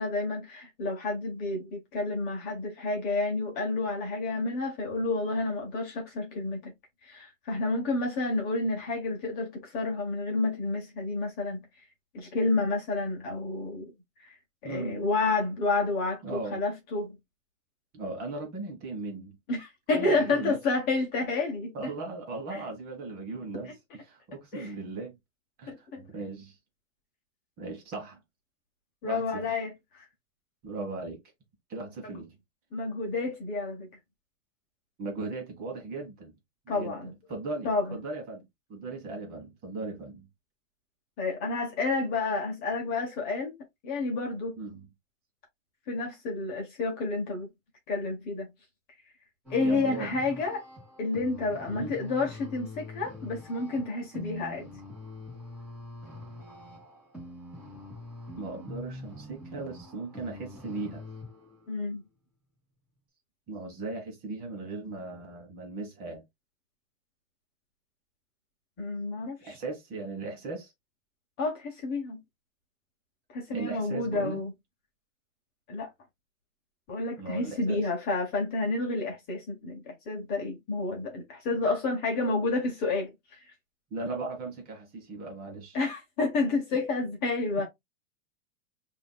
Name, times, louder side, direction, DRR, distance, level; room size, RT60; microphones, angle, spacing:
voice 1, 0.0-6.7 7.0-11.7 12.1-13.9 14.2-14.3 14.6-17.2 19.5-21.9 24.5-24.7 25.7-26.0 29.0-30.0 32.0-32.2 32.7-33.9 36.7-37.1 37.6-38.0 41.2-43.5 43.8-44.6 45.9-47.5 47.9-48.5 49.5-50.6 51.0-54.7 61.7-62.0 68.8-69.6 71.4-72.2 73.3-74.5 75.7-75.9 76.9-83.5 85.7-87.7, left 3 dB, 25° left, 1.1 m, -30 dB
voice 2, 14.6-15.1 16.2-16.6 17.9-19.4 19.9-20.6 21.7-25.2 25.6-26.6 27.6-28.2 29.0-29.5 30.6-31.2 31.7-32.4 35.0-36.3 36.7-40.3 44.6-44.9 49.6-50.2 51.7-51.9 54.1-54.3 58.4-61.0 63.5-66.2 69.4-70.7 73.5-74.5 77.2-77.9 83.9-85.8, right 3 dB, 25° right, 1.3 m, -38 dB
sound 1, 49.4-61.8, left 2 dB, 5° right, 1.7 m, -44 dB
5.6 x 2.8 x 2.2 m
supercardioid pair, 160°, 38 cm